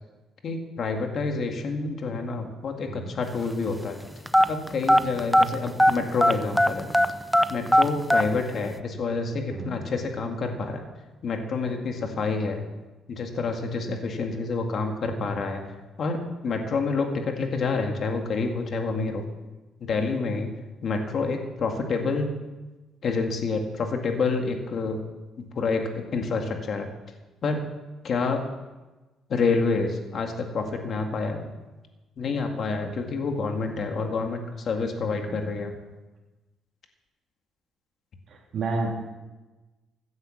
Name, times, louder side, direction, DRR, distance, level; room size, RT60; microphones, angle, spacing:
voice 1, 0.4-4.0 4.5-6.9 7.5-10.8 11.2-12.6 13.1-15.6 16.0-19.2 19.8-20.5 20.8-22.3 23.0-25.0 25.6-26.9 27.4-27.6 28.0-28.4 29.3-31.5 32.2-35.7, left 4 dB, 50° left, 4 dB, 1.9 m, -28 dB
sound 1, 4.3-6.0 6.2-8.3, equal, ahead, 0.6 m, -18 dB
voice 2, 38.3-39.2, right 3 dB, 50° right, -2 dB, 3.5 m, -31 dB
15.5 x 9.5 x 7.3 m, 1.1 s
cardioid pair, 125°, 0 cm